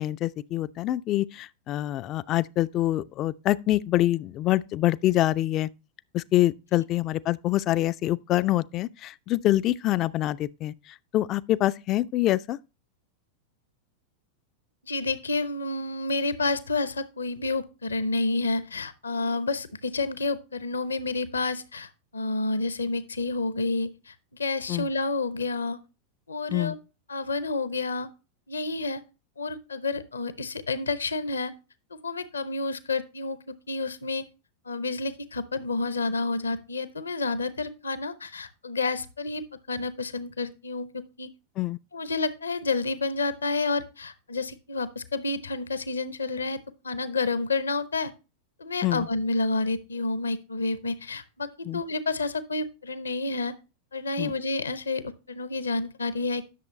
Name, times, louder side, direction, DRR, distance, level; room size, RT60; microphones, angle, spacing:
voice 1, 0.0-5.7 6.1-10.7 11.1-12.6 24.7-24.9 26.5-26.8 41.6-41.8 48.8-49.1 51.7-51.8 54.2-54.3, left 15 dB, 35° left, 0.4 m, -25 dB
voice 2, 14.8-25.8 26.3-26.8 27.1-28.1 28.5-29.0 29.4-31.5 31.9-34.3 34.7-39.4 39.7-41.3 41.9-48.1 48.6-51.5 51.7-53.5 53.9-56.4, left 3 dB, 75° left, 0.8 m, -29 dB
11.0 x 6.6 x 3.1 m
figure-of-eight pair, 90°, 0 cm